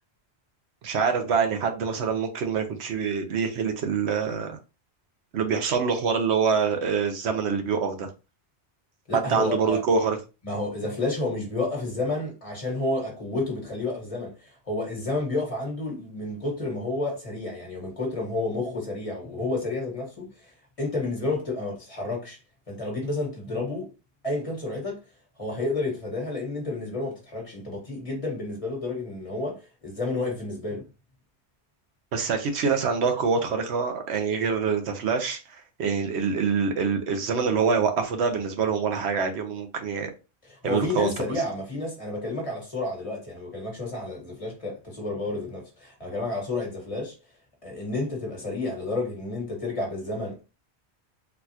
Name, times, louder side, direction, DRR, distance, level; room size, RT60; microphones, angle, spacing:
voice 1, 0.8-4.6 5.3-8.1 9.3-10.2 32.1-40.1 40.6-41.1, right 5 dB, 80° right, 1.0 m, -25 dB
voice 2, 9.1-9.8 10.4-20.3 20.8-22.4 22.7-23.9 24.2-25.0 25.4-30.8 40.4-47.1 47.6-50.4, left 2 dB, 30° left, 1.3 m, -30 dB
4.0 x 2.3 x 2.7 m
omnidirectional pair, 1.1 m